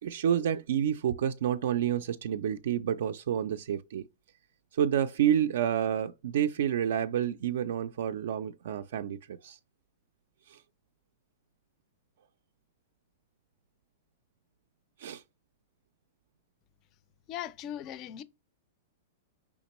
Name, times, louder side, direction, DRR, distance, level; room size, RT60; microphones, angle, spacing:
voice 1, 0.0-4.0 4.7-9.6 10.5-10.6 15.0-15.2, right 9 dB, 65° right, 0.3 m, -29 dB
voice 2, 17.3-18.2, left 10 dB, 30° left, 0.3 m, -38 dB
5.0 x 3.6 x 2.9 m
supercardioid pair, 160°, 0 cm